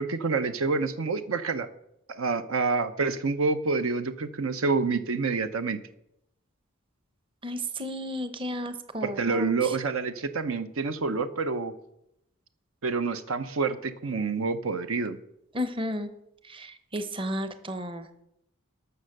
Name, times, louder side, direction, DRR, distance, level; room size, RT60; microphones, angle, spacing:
voice 1, 0.0-1.7 2.1-5.8 9.0-11.7 12.8-15.2, right 4 dB, 75° right, 10 dB, 0.7 m, -28 dB
voice 2, 7.4-9.5 15.5-16.1 16.5-18.1, equal, 25° right, 10 dB, 0.8 m, -33 dB
12.5 x 6.6 x 6.5 m, 0.80 s
head